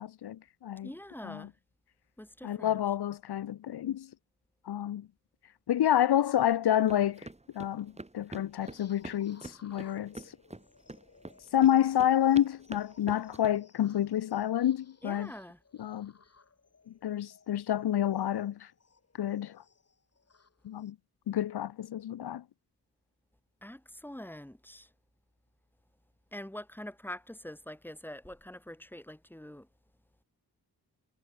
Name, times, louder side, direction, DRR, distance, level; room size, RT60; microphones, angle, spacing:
voice 1, 0.0-0.9 1.2-1.5 2.4-4.1 4.7-5.1 5.7-7.3 7.5-10.1 11.5-15.3 15.8-16.1 16.9-18.7 19.2-19.6 20.6-20.9 21.3-22.4, left 11 dB, 80° left, 0.9 m, -29 dB
voice 2, 0.8-1.5 2.2-2.8 15.0-15.6 23.6-24.9 26.3-29.7, left 1 dB, 5° left, 6.0 m, -44 dB
sound 1, 6.9-13.5, right 2 dB, 15° right, 4.7 m, -46 dB
sound 2, 8.6-20.9, left 4 dB, 40° left, 5.8 m, -61 dB
wide cardioid pair, 125°, 38 cm